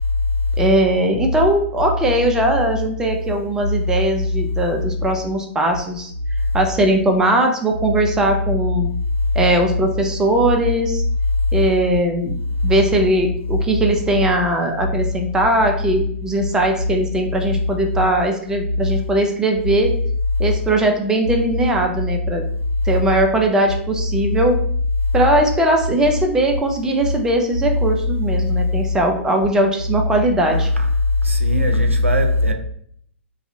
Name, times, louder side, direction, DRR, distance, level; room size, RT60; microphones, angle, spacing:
voice 1, 0.6-6.1 6.5-8.9 9.4-11.0 11.5-12.4 12.6-20.0 20.4-22.4 22.8-24.6 25.1-30.7, right 1 dB, 10° right, 0.4 m, -19 dB
voice 2, 31.2-32.5, left 1 dB, 90° right, 0.4 m, -17 dB
2.4 x 2.3 x 2.7 m
figure-of-eight pair, 110°, 7 cm